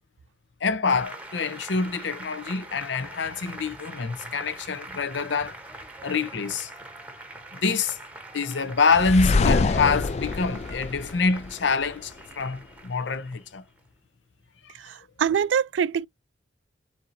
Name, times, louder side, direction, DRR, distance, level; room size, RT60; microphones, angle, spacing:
voice 1, 0.6-5.6 6.0-6.7 7.5-8.0 8.3-13.6 14.6-14.7, left 4 dB, 80° left, 0.6 m, -26 dB
Applause, 0.9-13.9, right 2 dB, 10° right, 0.9 m, -43 dB
sound 1, 8.9-11.9, left 3 dB, 35° left, 0.3 m, -25 dB
voice 2, 14.7-16.1, right 7 dB, 85° right, 0.3 m, -25 dB
7.2 x 2.7 x 2.6 m
head